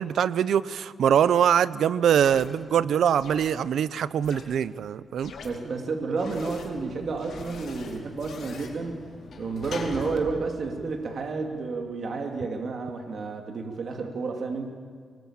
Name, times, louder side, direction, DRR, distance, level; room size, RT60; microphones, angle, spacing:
voice 1, 0.0-5.3, right 8 dB, 85° right, 17 dB, 0.7 m, -23 dB
sound 1, 2.1-2.5 3.2-3.5 4.2-4.4 5.2-5.5 6.2-6.7 7.2-8.7, left 5 dB, 75° left, 5.1 m, -44 dB
voice 2, 5.4-9.0 9.4-14.7, right 4 dB, 55° right, 2 dB, 2.7 m, -31 dB
Sliding door / Slam, 6.5-11.8, left 3 dB, 60° left, 4.4 m, -43 dB
24.0 x 21.0 x 8.9 m, 2.1 s
cardioid pair, 120°, 0 cm